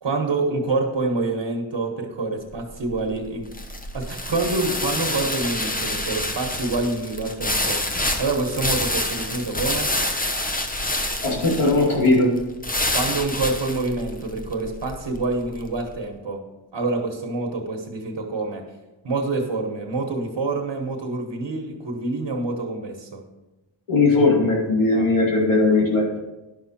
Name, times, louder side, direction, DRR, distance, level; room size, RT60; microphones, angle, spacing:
voice 1, 0.0-3.5 3.9-9.9 12.9-18.6 19.0-23.2 24.9-25.1, right 3 dB, 60° right, 1 dB, 1.4 m, -27 dB
sound 1, 2.5-15.8, left 1 dB, 15° left, 0.9 m, -28 dB
voice 2, 11.2-12.3 23.9-26.0, left 2 dB, 90° left, -4 dB, 2.8 m, -18 dB
11.0 x 5.9 x 4.3 m, 1.0 s
cardioid pair, 60°, 49 cm